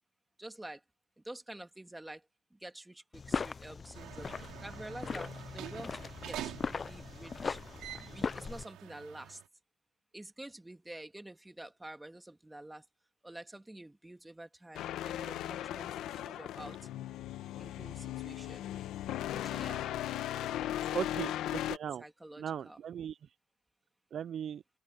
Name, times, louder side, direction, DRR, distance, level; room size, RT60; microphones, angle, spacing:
voice 1, 0.4-0.8 1.2-2.2 2.5-4.3 4.6-7.6 8.1-9.4 10.1-12.8 13.2-16.8 17.6-18.7 19.3-19.9 20.9-21.3 22.0-22.8, right 1 dB, 10° right, 2.4 m, -48 dB
sound 1, 3.1-8.6, left 5 dB, 40° left, 0.4 m, -39 dB
sound 2, 3.9-9.5, right 13 dB, 90° right, 3.0 m, -47 dB
sound 3, 14.7-21.8, left 12 dB, 85° left, 1.0 m, -37 dB
voice 2, 20.9-22.0 22.4-23.2 24.1-24.6, right 8 dB, 60° right, 0.4 m, -38 dB
open air
cardioid pair, 90°, 0 cm